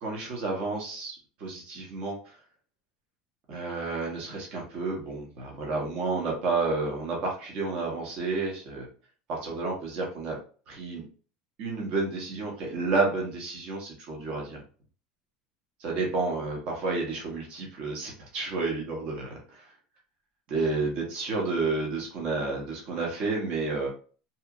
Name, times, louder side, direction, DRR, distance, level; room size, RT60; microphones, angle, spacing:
voice 1, 0.0-2.3 3.5-8.9 9.3-10.4 10.7-11.0 11.6-14.6 15.8-19.7 20.5-23.9, right 3 dB, 45° right, -1 dB, 0.9 m, -30 dB
2.8 x 2.3 x 2.3 m, 0.39 s
cardioid pair, 160°, 2 cm